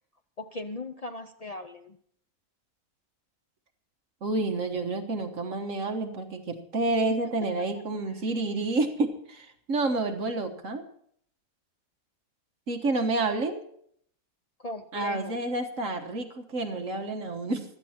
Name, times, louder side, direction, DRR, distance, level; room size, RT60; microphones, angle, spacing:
voice 1, 0.4-2.0 7.1-7.2 7.8-7.9 14.6-15.4, left 2 dB, 70° left, 7 dB, 0.3 m, -38 dB
voice 2, 4.2-10.8 12.7-13.6 14.9-17.6, right 2 dB, 60° right, 5 dB, 1.7 m, -29 dB
16.0 x 12.0 x 4.3 m, 0.65 s
omnidirectional pair, 1.5 m